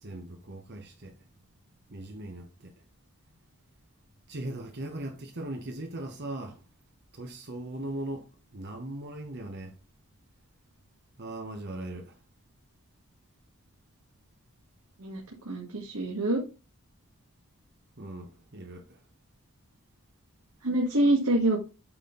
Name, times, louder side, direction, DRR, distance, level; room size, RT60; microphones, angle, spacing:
voice 1, 0.0-1.1 1.9-2.7 4.3-6.6 7.1-9.7 11.2-12.2 18.0-19.0, right 1 dB, 50° right, 1.0 m, -39 dB
voice 2, 15.0-16.4 20.6-21.7, right 1 dB, 75° right, 1.9 m, -26 dB
8.9 x 4.3 x 3.9 m
head